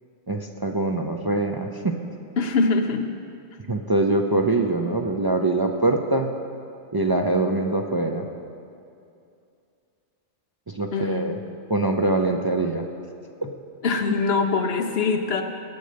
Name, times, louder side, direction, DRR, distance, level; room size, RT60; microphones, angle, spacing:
voice 1, 0.3-2.0 3.7-6.3 6.9-8.3 10.7-11.4 11.7-12.8 13.4-13.5, right 2 dB, 40° right, 3 dB, 0.3 m, -23 dB
voice 2, 2.4-3.0 10.9-11.3 13.8-15.4, left 4 dB, 60° left, 6 dB, 1.1 m, -23 dB
18.5 x 6.6 x 5.1 m, 2.5 s
omnidirectional pair, 1.2 m